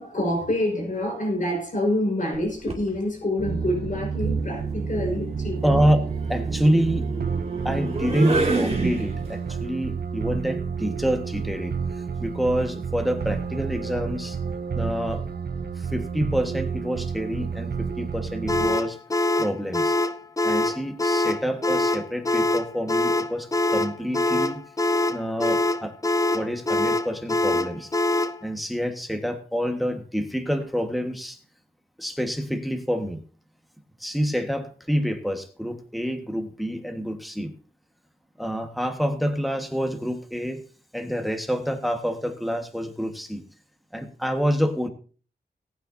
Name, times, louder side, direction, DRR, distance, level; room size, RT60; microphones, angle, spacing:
voice 1, 0.0-5.8, left 1 dB, 50° left, 5.3 m, -27 dB
sound 1, 2.3-2.9 4.3-9.5, right 2 dB, 35° right, 2.5 m, -29 dB
sound 2, 3.4-18.8, right 5 dB, 65° right, 0.9 m, -30 dB
voice 2, 5.6-6.0 6.3-7.1 7.6-14.4 14.7-15.2 15.8-19.0 19.3-20.0 20.4-24.6 25.0-25.9 26.3-27.9 28.4-31.4 32.0-33.2 34.0-37.5 38.4-40.6 40.9-43.4 43.9-44.9, equal, ahead, 1.5 m, -27 dB
sound 3, 18.5-28.4, left 2 dB, 20° left, 0.5 m, -24 dB
19.5 x 9.1 x 2.8 m
wide cardioid pair, 130°, 17 cm